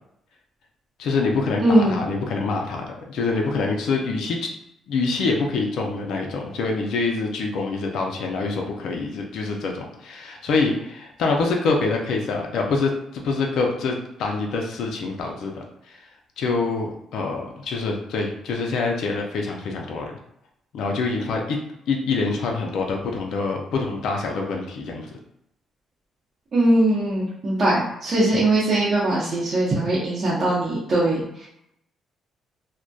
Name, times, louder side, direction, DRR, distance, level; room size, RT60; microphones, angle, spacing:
voice 1, 1.0-4.4 4.9-15.6 16.4-20.1 20.7-21.6 21.9-25.1 28.3-28.4, left 3 dB, 75° left, 1 dB, 0.4 m, -25 dB
voice 2, 1.6-2.0 26.5-31.5, right 1 dB, 45° right, -8 dB, 0.7 m, -21 dB
2.6 x 2.1 x 2.2 m, 0.78 s
cardioid pair, 90°, 0 cm